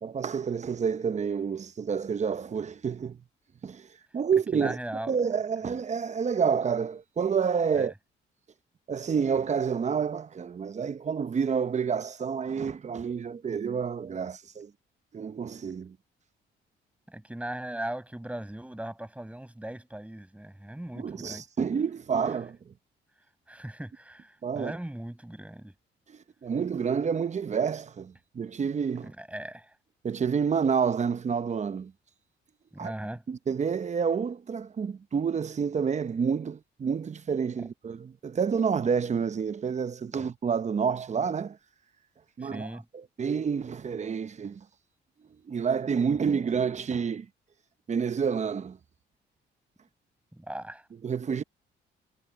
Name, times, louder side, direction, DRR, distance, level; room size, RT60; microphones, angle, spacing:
voice 1, 0.0-3.2 3.6-3.9 4.1-4.8 5.1-7.9 8.9-14.7 15.1-16.0 21.0-22.7 24.4-24.7 26.1-29.1 30.0-31.9 32.8-32.9 33.3-41.6 42.4-44.6 45.5-47.3 47.9-48.8 51.0-51.4, right 6 dB, 35° right, 0.8 m, -29 dB
voice 2, 4.5-5.2 7.7-7.9 17.1-21.4 23.5-25.7 29.0-29.7 32.7-33.2 37.6-37.7 40.2-40.3 42.4-42.9 50.3-50.9, right 1 dB, 5° right, 6.4 m, -39 dB
cardioid pair, 90°, 20 cm